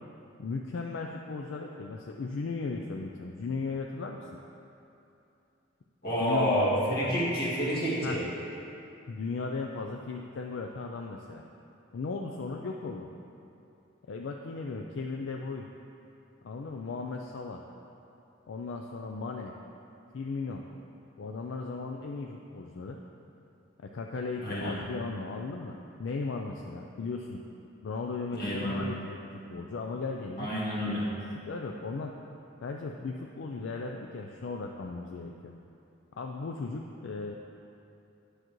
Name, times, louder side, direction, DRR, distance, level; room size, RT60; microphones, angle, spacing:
voice 1, 0.4-4.3 6.2-7.2 8.0-8.2 9.1-11.4 11.9-13.1 14.1-15.7 16.4-17.6 18.5-19.5 20.1-20.6 21.2-23.0 23.8-27.4 27.8-30.5 31.5-32.1 32.6-35.5 36.2-37.4, left 4 dB, 70° left, 1 dB, 0.4 m, -36 dB
voice 2, 6.0-8.2 24.4-24.8 28.4-28.8 30.4-31.1, equal, 50° left, -6 dB, 1.7 m, -28 dB
9.8 x 6.6 x 3.1 m, 2.8 s
head